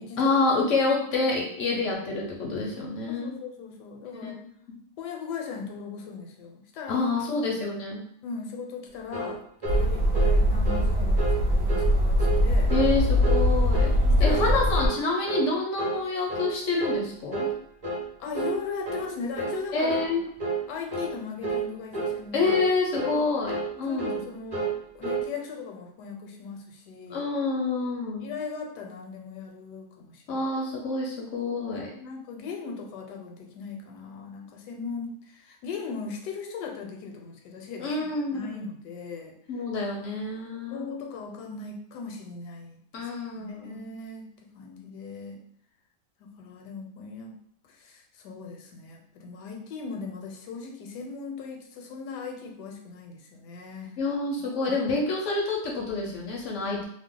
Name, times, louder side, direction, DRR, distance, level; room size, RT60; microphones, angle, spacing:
voice 1, 0.2-3.4 4.1-4.8 6.9-8.0 12.7-13.9 14.2-17.5 19.7-20.2 22.3-24.2 27.1-28.3 30.3-31.9 37.8-38.6 39.5-40.8 42.9-43.9 54.0-56.8, left 3 dB, 65° left, -1 dB, 0.8 m, -28 dB
voice 2, 3.1-4.4 5.0-7.0 8.2-12.7 13.8-14.9 18.2-20.2 20.7-22.6 23.0-23.3 23.8-27.3 28.2-30.4 31.9-39.3 40.4-43.1 43.4-45.4 46.2-47.4 47.7-54.0 54.7-54.8, left 5 dB, 80° left, 2 dB, 1.2 m, -38 dB
sound 1, 9.1-9.4 9.6-9.8 10.1-10.4 10.6-10.9 11.2-11.4 11.7-11.9 12.2-12.4 12.7-12.9 13.2-13.4 13.7-14.0 14.2-14.5 14.7-15.0 15.3-15.5 15.8-16.0 16.3-16.5 16.8-17.0 17.3-17.5 17.8-18.1 18.3-18.6 18.8-19.1 19.4-19.6 19.9-20.1 20.4-20.6 20.9-21.1 21.4-21.7 21.9-22.1 22.4-22.7 22.9-23.2 23.5-23.7 24.0-24.2 24.5-24.8 25.0-25.3, right 3 dB, 20° right, 0.7 m, -30 dB
sound 2, 9.7-14.9, equal, 65° right, 1.1 m, -22 dB
2.8 x 2.0 x 3.7 m, 0.67 s
omnidirectional pair, 1.8 m